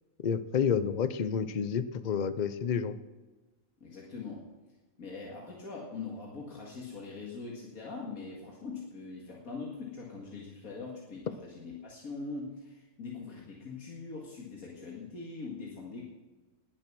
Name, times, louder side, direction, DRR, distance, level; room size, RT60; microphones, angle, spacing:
voice 1, 0.2-3.0, left 7 dB, 45° left, 13 dB, 0.6 m, -29 dB
voice 2, 3.8-4.5 5.0-16.0, left 4 dB, 80° left, -3 dB, 2.4 m, -42 dB
19.5 x 7.5 x 6.1 m, 1.2 s
omnidirectional pair, 1.5 m